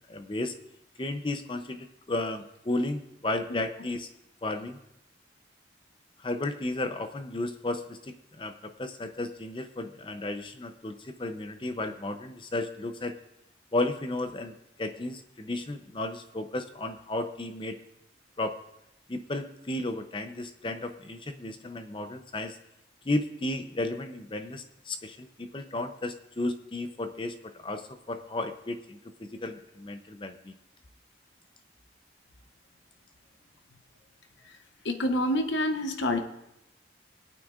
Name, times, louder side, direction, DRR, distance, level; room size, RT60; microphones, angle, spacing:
voice 1, 0.1-0.5 1.0-4.1 4.4-4.8 6.2-13.2 13.7-17.8 18.4-18.6 19.1-22.6 23.0-30.5, left 2 dB, 25° left, 8 dB, 0.6 m, -33 dB
voice 2, 34.8-36.2, left 1 dB, 75° left, 6 dB, 0.9 m, -27 dB
24.0 x 8.8 x 2.5 m, 0.85 s
head